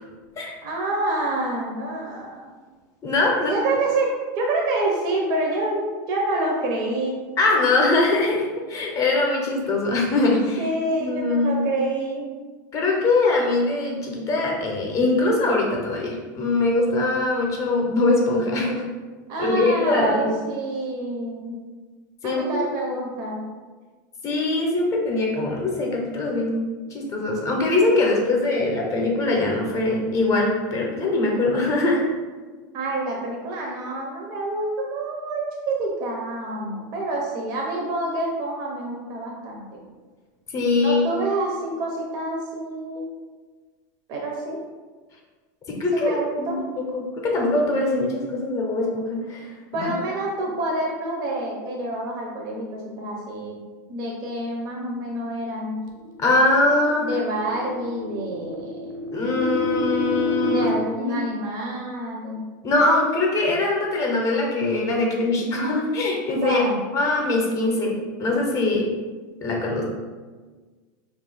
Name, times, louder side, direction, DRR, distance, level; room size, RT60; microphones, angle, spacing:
voice 1, 0.6-2.5 3.3-7.2 10.6-12.3 19.3-21.6 22.2-23.5 32.7-39.8 40.8-43.0 44.1-44.6 45.9-46.6 49.7-53.6 53.9-55.8 57.0-58.9 60.5-62.5 66.4-66.8, right 2 dB, 45° right, -1 dB, 0.5 m, -27 dB
voice 2, 3.0-3.5 7.4-10.7 11.0-11.6 12.7-18.8 19.4-20.4 22.2-22.6 24.2-32.0 40.5-41.0 45.7-46.6 46.9-49.9 56.2-57.1 59.1-60.7 61.0-61.2 62.6-66.6 66.9-67.9 68.2-68.9 69.4-69.8, left 2 dB, 30° left, -1 dB, 0.6 m, -22 dB
sound 1, 56.0-60.7, left 2 dB, 85° left, 0.6 m, -29 dB
2.6 x 2.4 x 3.8 m, 1.4 s
supercardioid pair, 140°, 10 cm